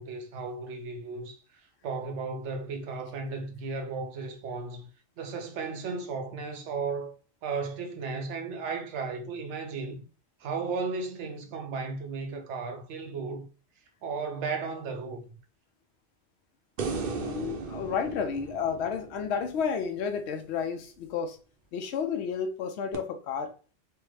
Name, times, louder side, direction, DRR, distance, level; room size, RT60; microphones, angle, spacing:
voice 1, 0.0-4.9 5.2-7.1 7.4-10.1 10.4-13.5 14.0-15.2, right 4 dB, 90° right, 1.0 m, -35 dB
sound 1, 16.8-20.1 22.9-23.0, right 4 dB, 60° right, 0.7 m, -36 dB
voice 2, 17.2-21.4 21.7-23.5, left 6 dB, 75° left, 0.8 m, -31 dB
3.3 x 2.1 x 3.1 m
omnidirectional pair, 1.1 m